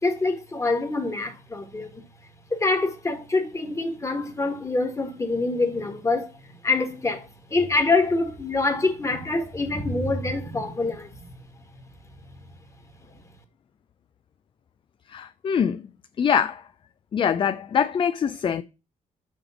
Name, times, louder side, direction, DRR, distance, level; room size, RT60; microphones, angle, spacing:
voice 1, 0.0-2.0 2.5-11.2, left 3 dB, 20° left, 1.6 m, -25 dB
voice 2, 15.1-15.8 16.2-16.6 17.1-18.6, left 7 dB, 40° left, 0.3 m, -23 dB
6.2 x 3.3 x 6.0 m
cardioid pair, 90°, 14 cm